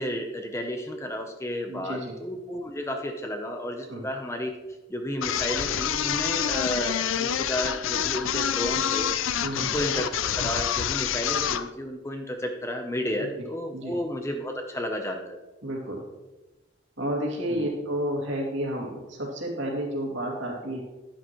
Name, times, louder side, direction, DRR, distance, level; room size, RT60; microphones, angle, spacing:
voice 1, 0.0-4.5 4.9-9.1 9.6-15.2 17.5-17.7, equal, 15° left, 4 dB, 0.7 m, -32 dB
voice 2, 1.7-2.1 3.9-4.0 9.4-9.7 13.2-13.5 13.7-14.0 15.6-16.0 17.0-20.8, equal, 70° right, -2 dB, 2.6 m, -31 dB
sound 1, 5.2-11.7, left 9 dB, 80° left, 0.5 m, -27 dB
10.5 x 9.9 x 3.1 m, 1.1 s
head